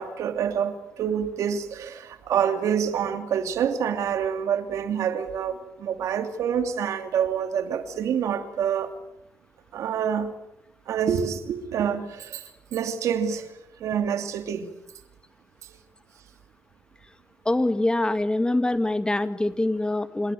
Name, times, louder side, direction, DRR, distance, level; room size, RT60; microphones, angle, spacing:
voice 1, 0.0-8.9 9.7-10.3 10.9-12.4 12.7-13.5 13.8-14.7, right 8 dB, 75° right, 8 dB, 2.7 m, -27 dB
voice 2, 17.5-20.3, left 2 dB, 15° left, 11 dB, 2.2 m, -24 dB
28.5 x 17.5 x 9.2 m, 0.87 s
supercardioid pair, 55°, 5 cm